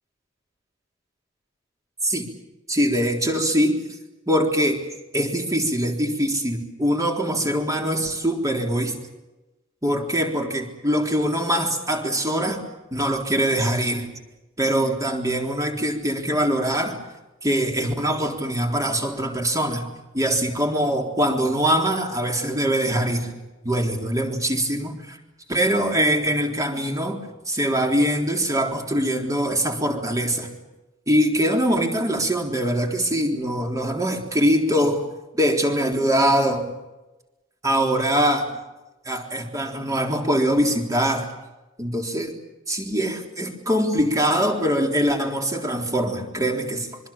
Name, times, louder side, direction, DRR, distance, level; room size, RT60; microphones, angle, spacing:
voice 1, 2.7-3.8 4.3-4.9 5.1-9.0 9.8-12.6 12.9-14.1 14.6-17.0 17.4-19.9 20.1-23.3 23.6-25.2 25.5-27.2 27.5-30.5 31.1-35.0 35.3-36.7 37.6-38.6 39.1-41.3 41.8-42.3 42.7-47.0, equal, 15° right, 2 dB, 3.7 m, -23 dB
25.5 x 24.5 x 7.3 m, 1.0 s
head